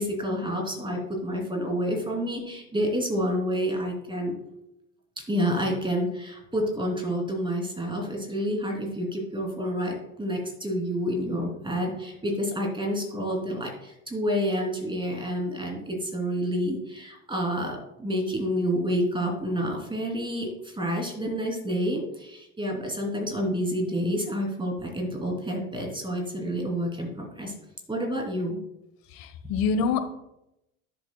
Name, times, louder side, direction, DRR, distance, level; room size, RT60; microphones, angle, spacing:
voice 1, 0.0-4.3 5.3-27.5 27.9-28.6, equal, 10° right, 0 dB, 3.0 m, -29 dB
voice 2, 29.2-30.0, left 5 dB, 55° left, 9 dB, 1.2 m, -25 dB
12.0 x 7.6 x 2.2 m, 0.85 s
hypercardioid pair, 80°, 41 cm